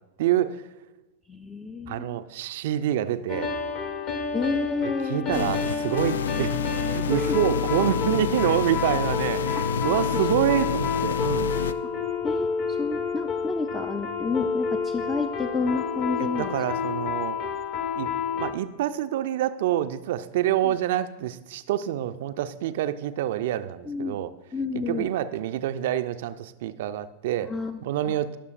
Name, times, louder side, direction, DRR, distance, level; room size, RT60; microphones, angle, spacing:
voice 1, 0.2-0.6 1.9-3.5 5.1-6.6 6.9-11.5 16.4-17.4 18.0-24.3 24.7-27.5 27.8-28.4, right 12 dB, 55° right, 12 dB, 0.5 m, -27 dB
voice 2, 1.3-2.3 4.3-5.5 7.2-7.4 12.2-16.6 20.6-20.7 23.9-24.2 24.5-25.1 27.4-27.8 28.1-28.2, left 4 dB, 15° left, 5 dB, 0.5 m, -30 dB
sound 1, 3.3-18.5, left 6 dB, 40° left, 1.2 m, -29 dB
sound 2, 5.3-11.7, left 6 dB, 65° left, 0.3 m, -29 dB
20.0 x 6.9 x 2.5 m, 1.1 s
figure-of-eight pair, 90°, 0 cm